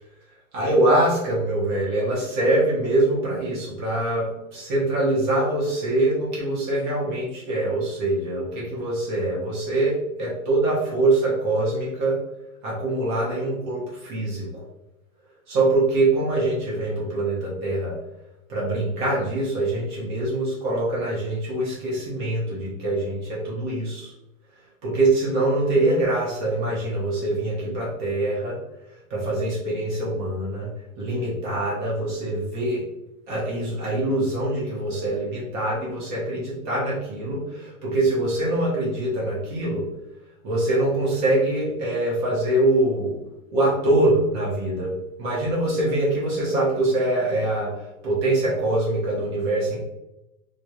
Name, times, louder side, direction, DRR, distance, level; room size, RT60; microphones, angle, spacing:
voice 1, 0.5-12.2 12.6-14.6 15.5-18.0 18.5-24.1 24.8-28.6 29.1-32.9 33.3-39.9 40.4-43.2 43.5-47.7 48.0-49.8, right 2 dB, 35° right, -5 dB, 0.6 m, -24 dB
2.2 x 2.0 x 2.8 m, 0.95 s
hypercardioid pair, 130°, 41 cm